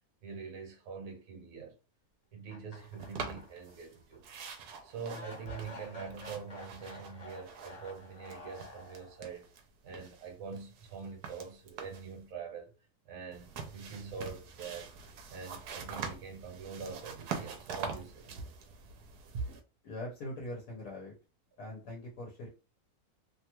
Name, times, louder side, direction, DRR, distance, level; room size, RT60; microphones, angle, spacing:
voice 1, 0.2-1.8 2.3-4.3 4.8-9.5 9.8-12.7 13.0-14.9 15.3-18.3 19.3-19.5, right 5 dB, 65° right, 1.3 m, -44 dB
sound 1, 2.5-3.8 4.1-4.2 5.1-9.4, left 1 dB, 35° left, 0.7 m, -50 dB
sound 2, 3.0-3.9 4.2-8.0 8.2-9.6 9.9-12.1 13.3-19.6, right 6 dB, 90° right, 1.1 m, -44 dB
voice 2, 19.8-21.1 21.6-22.5, left 1 dB, 80° left, 1.4 m, -42 dB
3.1 x 2.3 x 2.9 m
omnidirectional pair, 1.6 m